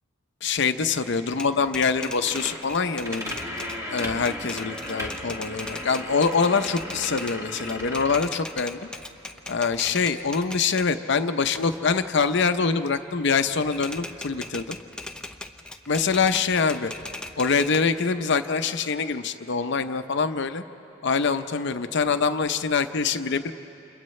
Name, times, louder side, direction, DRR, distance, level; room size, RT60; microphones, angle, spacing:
voice 1, 0.4-3.4 3.9-8.8 9.5-14.8 15.9-16.9 17.4-20.6 21.0-23.5, left 5 dB, 60° left, 9 dB, 0.7 m, -24 dB
Typewriter, 1.3-10.9 11.4-13.2 13.5-17.8, left 2 dB, 5° left, 0.6 m, -39 dB
sound 1, 2.2-8.2, left 1 dB, 15° right, 2.2 m, -36 dB
30.0 x 27.5 x 3.2 m, 2.9 s
head